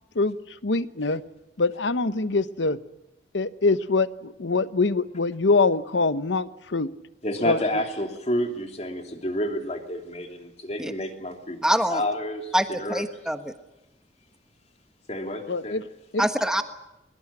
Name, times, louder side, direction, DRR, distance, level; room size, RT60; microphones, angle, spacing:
voice 1, 0.6-1.2 1.6-2.8 3.3-6.9 7.4-7.6 15.5-15.8 16.1-16.3, left 3 dB, 80° left, 14 dB, 0.9 m, -24 dB
voice 2, 7.2-13.0 15.1-15.8, left 1 dB, 35° left, 4 dB, 2.9 m, -30 dB
voice 3, 11.6-12.0 12.5-13.4 16.2-16.6, equal, 5° right, 7 dB, 1.4 m, -24 dB
22.5 x 21.5 x 8.7 m, 0.89 s
head